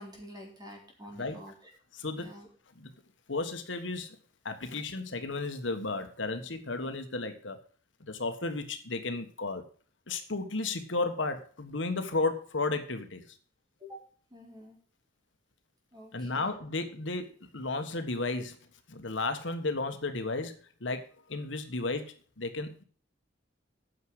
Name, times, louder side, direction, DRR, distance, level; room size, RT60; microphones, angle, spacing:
voice 1, 0.0-1.5 2.2-2.5 13.8-14.0 14.3-14.8 15.9-16.5, equal, 20° right, -1 dB, 3.9 m, -47 dB
voice 2, 1.9-2.3 2.7-2.9 3.3-4.2 4.4-7.6 8.0-9.6 10.1-13.2 16.1-18.6 18.9-22.8, left 3 dB, 80° left, 8 dB, 1.4 m, -33 dB
9.5 x 6.2 x 7.8 m, 0.43 s
head